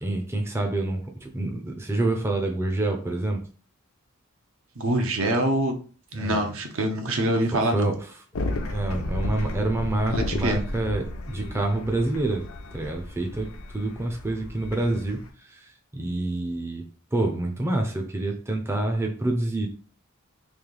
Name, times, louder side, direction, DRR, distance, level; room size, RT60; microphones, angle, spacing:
voice 1, 0.0-3.4 6.2-6.5 7.7-7.9 8.7-12.5 12.7-13.5 13.7-19.7, right 2 dB, 10° right, 2 dB, 0.5 m, -27 dB
voice 2, 4.8-5.7 6.1-7.9 10.1-10.6, right 1 dB, 70° right, 3 dB, 0.8 m, -25 dB
sound 1, 8.3-15.3, left 1 dB, 85° left, 0.7 m, -33 dB
3.3 x 2.7 x 3.8 m, 0.39 s
head